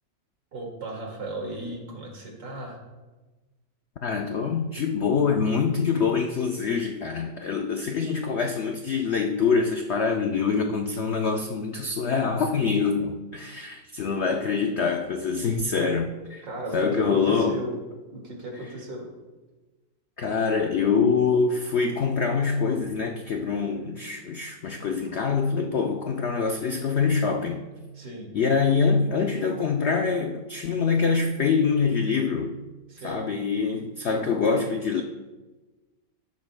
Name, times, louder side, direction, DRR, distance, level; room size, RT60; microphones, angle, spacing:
voice 1, 0.5-2.8 16.4-17.8 18.1-19.1 27.9-28.3 32.9-33.2, right 1 dB, 85° right, -1 dB, 2.8 m, -36 dB
voice 2, 4.0-16.5 16.7-17.6 20.2-27.6 28.3-32.6 33.0-35.0, left 5 dB, 80° left, 4 dB, 0.6 m, -25 dB
13.0 x 11.0 x 2.2 m, 1.2 s
omnidirectional pair, 1.9 m